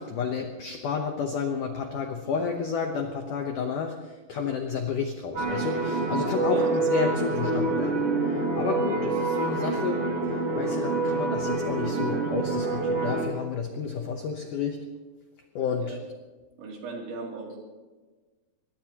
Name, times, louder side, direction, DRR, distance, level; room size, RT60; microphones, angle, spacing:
voice 1, 0.0-14.8 15.5-16.0, left 6 dB, 85° left, 4 dB, 1.8 m, -31 dB
sound 1, 5.4-13.3, right 3 dB, 40° right, 2.5 m, -27 dB
voice 2, 16.6-17.6, right 3 dB, 80° right, -1 dB, 5.3 m, -37 dB
23.0 x 20.5 x 3.0 m, 1.3 s
omnidirectional pair, 5.2 m